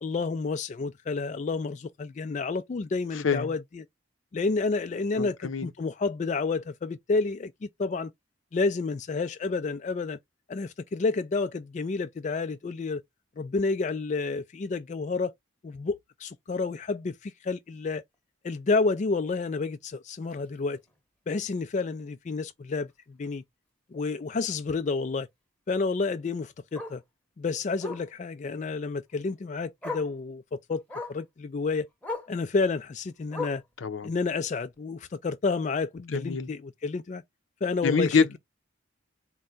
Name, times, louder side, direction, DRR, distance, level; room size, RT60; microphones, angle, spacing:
voice 1, 0.0-3.8 4.3-8.1 8.5-10.2 10.5-13.0 13.4-15.3 15.6-18.0 18.4-20.8 21.3-23.4 23.9-25.3 25.7-27.0 27.4-30.8 31.1-31.9 32.3-33.6 34.0-37.2 37.6-38.2, left 4 dB, 35° left, 0.3 m, -30 dB
voice 2, 5.1-5.7 33.8-34.1 36.0-36.5 37.8-38.4, left 5 dB, 75° left, 0.6 m, -26 dB
Bark, 20.3-20.5 20.9-21.0 21.4-21.5 21.7-21.8 23.2-23.3 25.8-25.9 26.7-27.0 27.8-28.1 29.3-29.4 29.8-30.1 30.9-31.2 32.0-32.4 33.3-33.7 34.7-34.8, left 3 dB, 5° left, 0.9 m, -36 dB
4.4 x 2.2 x 3.8 m
head